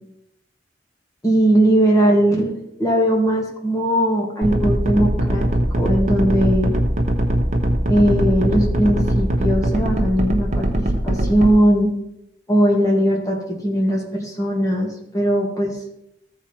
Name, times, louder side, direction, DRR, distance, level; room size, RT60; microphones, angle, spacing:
voice 1, 1.2-2.5 2.8-5.4 5.7-6.7 7.9-11.9 12.5-15.8, right 1 dB, 20° left, -1 dB, 2.1 m, -19 dB
sound 1, 4.4-11.5, right 1 dB, 45° right, 1.1 m, -20 dB
14.0 x 4.9 x 4.4 m, 0.81 s
head